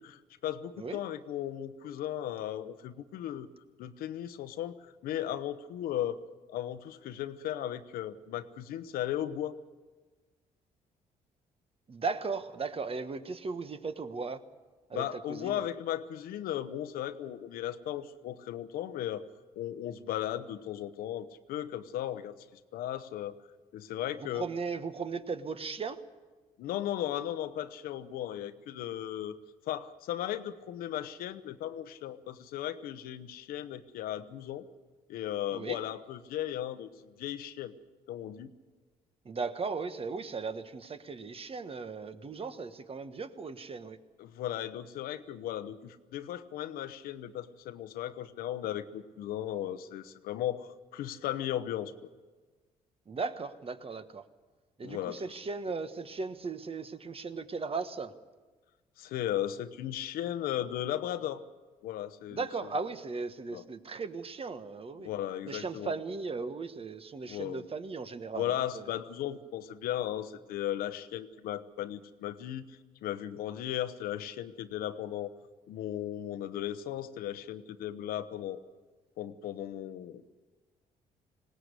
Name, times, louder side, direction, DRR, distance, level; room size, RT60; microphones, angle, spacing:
voice 1, 0.0-3.5 3.8-6.2 6.5-9.6 14.9-19.2 19.6-23.3 23.7-24.5 26.6-29.4 29.7-34.7 35.1-37.7 38.1-38.5 44.2-51.9 54.8-55.2 59.0-61.4 61.8-62.4 63.5-63.6 65.0-65.9 67.3-67.6 68.3-75.3 75.7-78.6 79.2-80.2, left 11 dB, 80° left, 12 dB, 0.9 m, -36 dB
voice 2, 11.9-14.4 14.9-15.6 24.2-26.0 35.5-35.8 39.2-44.0 53.1-54.2 54.8-58.1 62.3-65.1 65.4-68.9, right 4 dB, 40° right, 10 dB, 1.4 m, -37 dB
20.0 x 18.0 x 8.1 m, 1.3 s
supercardioid pair, 60°, 15 cm